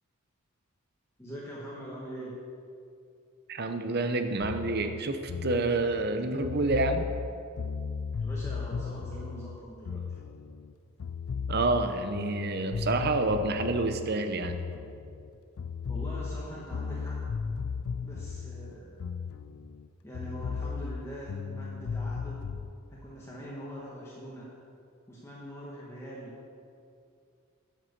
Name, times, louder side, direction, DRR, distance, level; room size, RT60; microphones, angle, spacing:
voice 1, 1.2-2.3 8.2-10.2 15.9-17.2 18.0-19.0 20.0-22.4 22.9-24.5 25.1-26.4, right 1 dB, 10° left, -6 dB, 1.3 m, -43 dB
voice 2, 3.5-7.1 11.5-14.6, right 2 dB, 45° right, 8 dB, 0.7 m, -28 dB
sound 1, 4.4-10.7 11.0-15.3 15.6-19.9 20.1-22.7, left 5 dB, 75° left, 0.4 m, -36 dB
9.7 x 7.5 x 6.6 m, 2.5 s
head